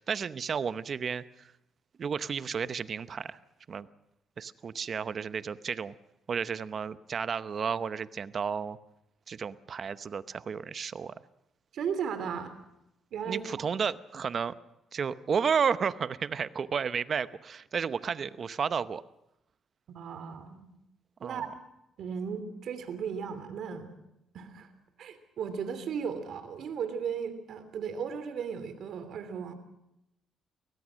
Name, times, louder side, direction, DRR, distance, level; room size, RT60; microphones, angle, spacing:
voice 1, 0.0-1.5 2.0-3.4 3.7-3.9 4.4-5.9 6.3-8.8 9.3-11.1 13.3-14.5 14.9-19.0 21.2-21.5, right 6 dB, 50° right, 14 dB, 0.8 m, -32 dB
voice 2, 11.7-12.5 13.1-13.6 19.9-20.6 21.2-21.5 22.0-24.0 24.3-24.7 25.0-29.6, right 7 dB, 70° right, 10 dB, 3.0 m, -36 dB
23.0 x 19.0 x 6.4 m, 0.89 s
cardioid pair, 90°, 0 cm